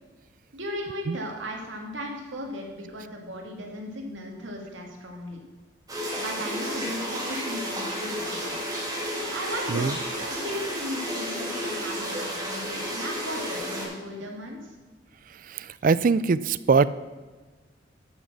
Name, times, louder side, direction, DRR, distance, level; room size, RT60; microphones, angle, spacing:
voice 1, 0.5-5.4 6.2-8.6 9.3-9.9 10.2-14.8, equal, 75° right, 1 dB, 2.1 m, -36 dB
sound 1, 5.9-13.8, equal, 20° right, 2.6 m, -32 dB
voice 2, 15.4-16.9, right 4 dB, 45° right, 16 dB, 0.3 m, -22 dB
12.0 x 6.4 x 6.1 m, 1.4 s
head